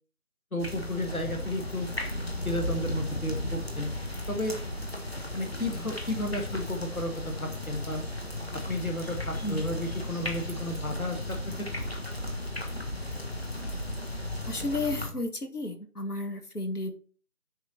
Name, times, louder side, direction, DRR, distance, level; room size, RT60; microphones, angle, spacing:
voice 1, 0.5-1.9 2.5-3.9 4.3-4.6 5.3-8.0 8.5-11.9, left 1 dB, 65° left, 4 dB, 1.9 m, -33 dB
sound 1, 0.6-15.1, left 1 dB, 45° left, 1.3 m, -35 dB
voice 2, 14.5-16.9, left 2 dB, 85° left, 6 dB, 1.9 m, -32 dB
10.0 x 4.4 x 4.3 m, 0.41 s
figure-of-eight pair, 175°, 45 cm